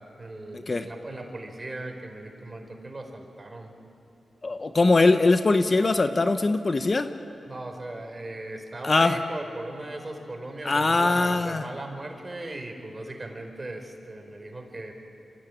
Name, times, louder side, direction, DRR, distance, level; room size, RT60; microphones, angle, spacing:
voice 1, 0.0-3.7 7.5-14.9, right 2 dB, 35° right, 3 dB, 4.6 m, -38 dB
voice 2, 0.5-0.9 4.4-7.1 8.8-9.2 10.6-11.7, left 3 dB, 45° left, 9 dB, 1.1 m, -21 dB
26.0 x 15.0 x 9.2 m, 2.7 s
supercardioid pair, 40°, 0 cm